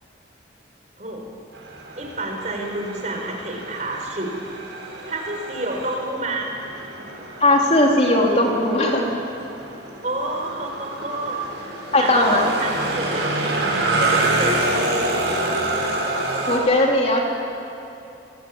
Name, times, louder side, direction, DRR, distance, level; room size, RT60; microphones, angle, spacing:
sound 1, 1.5-16.6, right 2 dB, 85° right, 6.1 m, -27 dB
voice 1, 1.9-4.3 5.0-6.5 10.0-13.3 13.7-15.1, right 2 dB, 40° right, 1 dB, 4.8 m, -29 dB
voice 2, 7.4-9.1 11.9-12.4 16.5-17.2, left 1 dB, 35° left, -1 dB, 3.4 m, -18 dB
27.5 x 20.5 x 8.8 m, 2.9 s
head